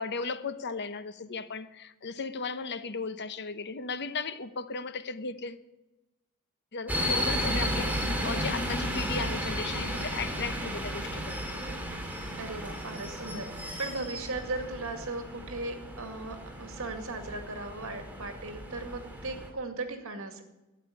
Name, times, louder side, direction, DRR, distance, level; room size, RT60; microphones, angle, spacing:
voice 1, 0.0-5.6 6.7-11.4, left 4 dB, 55° left, 0.9 m, -36 dB
sound 1, 6.9-19.5, equal, 10° right, 2.5 m, -34 dB
voice 2, 12.4-20.4, right 2 dB, 65° right, 2.2 m, -37 dB
12.5 x 9.1 x 9.0 m
head